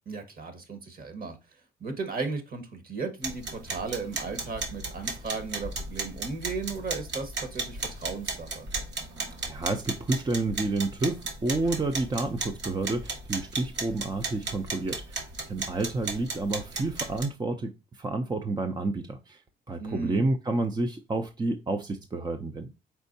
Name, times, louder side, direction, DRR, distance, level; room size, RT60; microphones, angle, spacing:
voice 1, 0.0-1.4 1.8-8.7 19.8-20.2, right 4 dB, 45° right, 1.5 m, -35 dB
sound 1, 3.2-17.2, right 3 dB, 65° right, 1.5 m, -36 dB
voice 2, 9.4-15.2 15.5-19.4 19.7-22.7, right 2 dB, 20° right, 0.5 m, -30 dB
4.5 x 4.3 x 2.7 m
cardioid pair, 90°, 20 cm